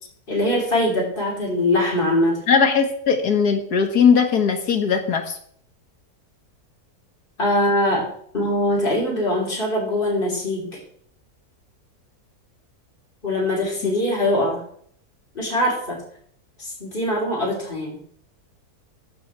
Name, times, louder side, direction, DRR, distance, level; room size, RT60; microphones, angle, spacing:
voice 1, 0.3-2.4 7.4-10.8 13.2-14.6 15.4-16.0 16.6-18.0, left 1 dB, 35° left, -3 dB, 3.5 m, -22 dB
voice 2, 2.5-5.4, left 6 dB, 80° left, 4 dB, 1.9 m, -19 dB
14.5 x 5.5 x 4.6 m, 0.63 s
omnidirectional pair, 1.6 m